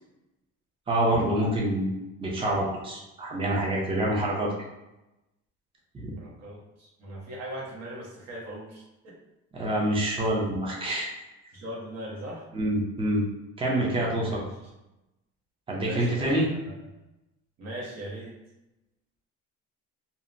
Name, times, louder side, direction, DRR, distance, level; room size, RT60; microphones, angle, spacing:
voice 1, 0.9-1.9 2.2-4.5 5.9-6.2 9.5-11.1 12.5-13.2 13.6-14.4 15.7-16.5, right 1 dB, 15° right, -3 dB, 0.6 m, -26 dB
voice 2, 6.2-9.2 11.5-12.5 14.1-14.4 15.8-16.7 17.6-18.4, right 1 dB, 60° right, -3 dB, 1.0 m, -39 dB
2.7 x 2.1 x 2.5 m, 0.96 s
cardioid pair, 120°, 31 cm